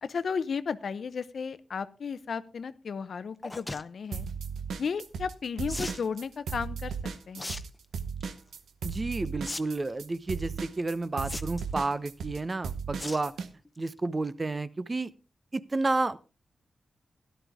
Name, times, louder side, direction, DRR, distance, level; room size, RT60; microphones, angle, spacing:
voice 1, 0.0-4.3 4.8-6.9 7.3-7.6, left 6 dB, 70° left, 15 dB, 0.7 m, -34 dB
sound 1, 3.4-3.8 5.7-6.0 7.4-7.6 8.0-8.3 9.4-9.6 9.9-10.0 11.2-11.7 13.0-13.3 13.7-13.9 14.3-14.4 14.5-14.6, left 1 dB, 20° left, 0.8 m, -37 dB
sound 2, 4.1-5.3 5.6-13.5, right 6 dB, 85° right, 1.0 m, -36 dB
voice 2, 8.8-13.3 13.8-15.1 15.5-16.2, right 3 dB, 35° right, 15 dB, 0.8 m, -31 dB
13.0 x 11.5 x 3.6 m, 0.32 s
cardioid pair, 55°, 0 cm